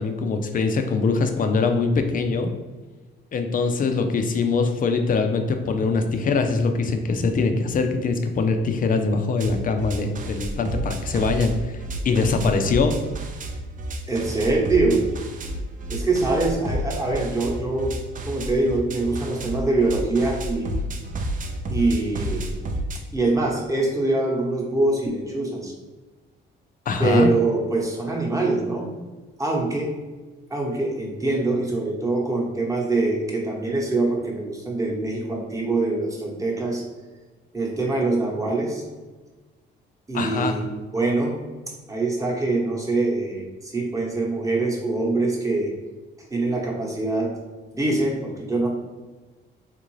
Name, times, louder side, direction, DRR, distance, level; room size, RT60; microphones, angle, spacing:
voice 1, 0.0-2.5 3.3-13.0 26.9-27.3 40.1-40.5, left 4 dB, 45° left, 6 dB, 0.4 m, -23 dB
sound 1, 9.4-23.0, right 1 dB, 40° right, 0.5 m, -31 dB
voice 2, 14.1-15.0 15.9-17.9 18.3-20.7 21.7-22.5 23.1-25.7 27.0-28.9 29.4-29.9 30.5-36.8 37.5-38.8 40.1-41.4 41.9-45.7 46.3-47.3 47.7-48.7, right 2 dB, 15° right, -2 dB, 0.9 m, -24 dB
3.6 x 2.5 x 3.1 m, 1.3 s
cardioid pair, 90°, 20 cm